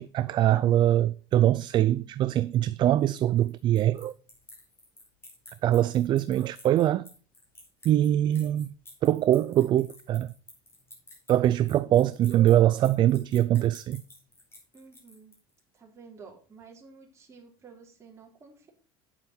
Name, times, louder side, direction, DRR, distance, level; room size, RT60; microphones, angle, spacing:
voice 1, 0.0-4.1 5.6-7.1 7.8-8.7 9.0-10.3 11.3-14.0, right 12 dB, 40° right, 0.5 m, -23 dB
sound 1, 3.0-15.6, left 2 dB, 20° left, 4.8 m, -52 dB
voice 2, 14.7-15.3 15.7-18.7, right 5 dB, 25° right, 3.8 m, -51 dB
8.9 x 8.4 x 4.5 m
supercardioid pair, 130°, 12 cm